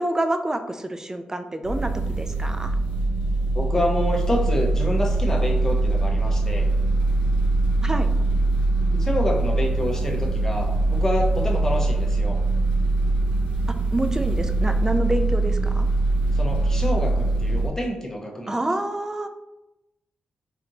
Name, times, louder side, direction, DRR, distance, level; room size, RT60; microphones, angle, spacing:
voice 1, 0.0-1.9 2.2-2.7 7.8-8.1 13.7-15.9 18.5-19.3, right 1 dB, 20° right, 8 dB, 0.4 m, -27 dB
sound 1, 1.6-17.7, right 2 dB, 90° right, 1.4 m, -22 dB
voice 2, 3.5-6.7 8.9-12.4 16.3-18.6, left 1 dB, 20° left, 0 dB, 0.9 m, -27 dB
4.3 x 2.6 x 2.7 m, 0.95 s
supercardioid pair, 50°, 3 cm